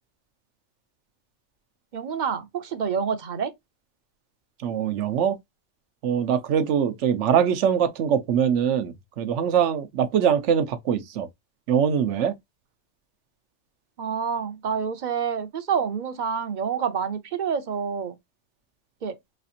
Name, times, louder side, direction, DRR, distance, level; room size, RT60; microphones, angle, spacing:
voice 1, 1.9-3.5 14.0-18.2 19.0-19.2, right 6 dB, 50° right, 0.7 m, -28 dB
voice 2, 4.6-5.4 6.0-11.3 11.7-12.3, right 8 dB, 80° right, 1.0 m, -23 dB
4.2 x 2.4 x 2.7 m
omnidirectional pair, 1.2 m